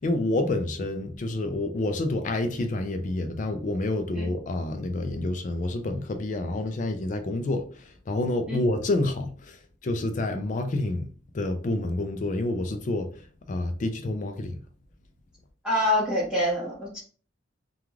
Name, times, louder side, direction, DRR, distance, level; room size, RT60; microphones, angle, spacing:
voice 1, 0.0-11.1 11.3-13.1 13.5-14.6, left 2 dB, 40° left, 0.3 m, -28 dB
voice 2, 15.6-17.0, left 1 dB, 5° right, 0.8 m, -25 dB
2.3 x 2.3 x 3.1 m
head